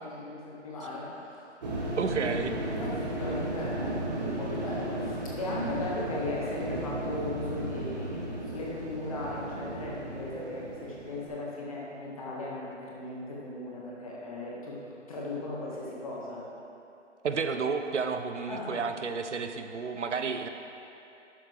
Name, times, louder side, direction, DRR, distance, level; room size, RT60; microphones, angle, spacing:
voice 1, 0.0-1.5 2.7-14.8 15.1-16.4 18.5-18.8, left 2 dB, 30° left, -5 dB, 1.6 m, -37 dB
sound 1, 1.6-11.3, right 1 dB, 35° right, 1.4 m, -35 dB
voice 2, 2.0-2.5 17.2-20.5, right 5 dB, 70° right, 7 dB, 0.7 m, -31 dB
12.5 x 7.2 x 3.3 m, 2.8 s
hypercardioid pair, 165°, 37 cm